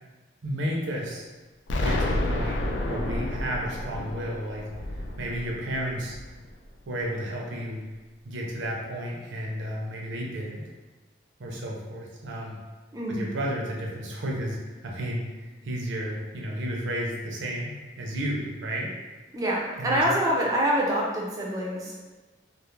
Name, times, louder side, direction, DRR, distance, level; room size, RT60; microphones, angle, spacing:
voice 1, 0.4-1.3 1.8-4.7 4.9-6.2 6.9-7.8 8.2-10.6 11.4-12.6 13.1-15.2 15.6-18.9 19.8-20.0, equal, 85° right, -2 dB, 0.5 m, -32 dB
Explosion, 1.7-6.5, left 1 dB, 70° left, 0.3 m, -30 dB
voice 2, 19.3-22.0, equal, 20° right, -3 dB, 0.4 m, -26 dB
2.3 x 2.0 x 3.0 m, 1.2 s
head